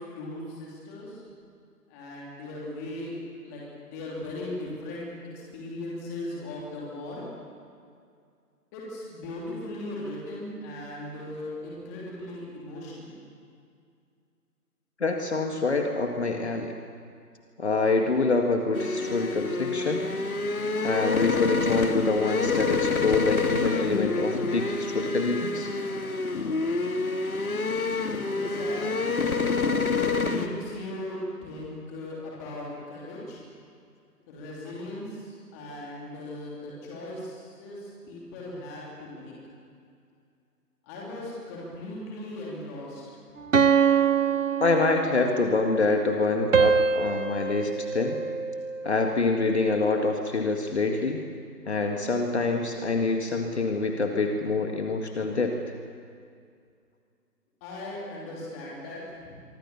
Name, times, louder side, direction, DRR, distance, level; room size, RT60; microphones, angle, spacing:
voice 1, 0.1-1.2 1.9-3.1 3.4-5.1 5.3-7.2 8.7-13.2 28.3-29.4 30.0-33.4 34.3-39.3 40.9-43.0 57.6-59.4, left 1 dB, 10° left, -4 dB, 2.9 m, -38 dB
voice 2, 15.0-16.7 17.6-20.0 20.8-25.7 44.6-48.2 48.8-51.2 51.7-55.6, left 3 dB, 40° left, 3 dB, 2.0 m, -26 dB
sound 1, 18.7-30.5, left 4 dB, 60° left, 2.1 m, -27 dB
sound 2, 43.5-45.5 46.5-48.9, right 6 dB, 50° right, 0.9 m, -24 dB
27.5 x 24.0 x 7.0 m, 2.3 s
figure-of-eight pair, 165°, 48 cm